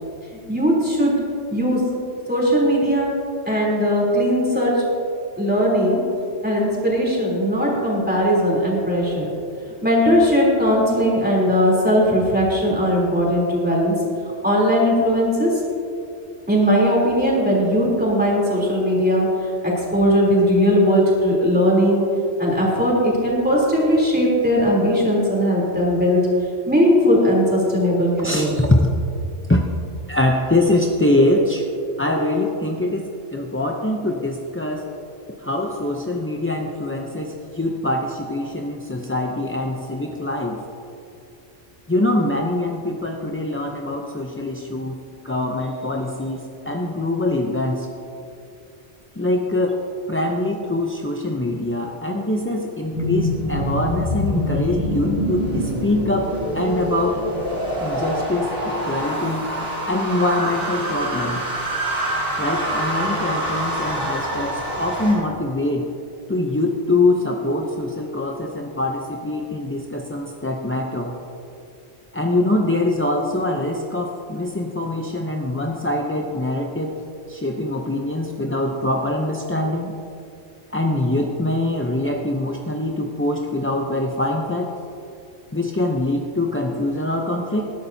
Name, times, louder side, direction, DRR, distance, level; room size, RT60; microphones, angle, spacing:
voice 1, 0.5-1.2 1.5-1.9 2.3-3.1 3.5-4.9 5.4-6.0 6.4-9.3 9.8-14.0 14.4-15.6 16.5-22.1 22.4-26.2 26.7-28.5, equal, 10° right, -5 dB, 3.3 m, -18 dB
voice 2, 28.2-28.9 29.5-29.6 30.1-31.7 32.0-34.9 35.4-40.7 41.9-45.0 45.2-47.9 49.2-49.8 50.1-57.2 57.8-59.5 59.8-61.4 62.4-65.9 66.3-71.1 72.1-77.0 77.3-79.9 80.7-84.7 85.5-87.7, left 1 dB, 15° left, 0 dB, 0.4 m, -23 dB
sound 1, 52.9-65.1, equal, 55° right, 3.5 m, -25 dB
19.5 x 11.5 x 2.8 m, 2.5 s
omnidirectional pair, 1.2 m